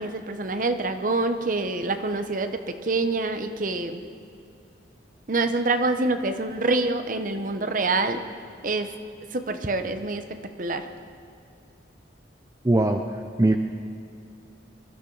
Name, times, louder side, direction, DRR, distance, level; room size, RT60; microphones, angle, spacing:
voice 1, 0.0-4.0 5.3-8.2 8.6-8.9 9.3-10.9, right 3 dB, 45° right, 8 dB, 0.9 m, -26 dB
voice 2, 12.6-13.0 13.4-13.6, right 2 dB, 20° right, 5 dB, 0.5 m, -19 dB
22.5 x 13.5 x 4.0 m, 2.5 s
head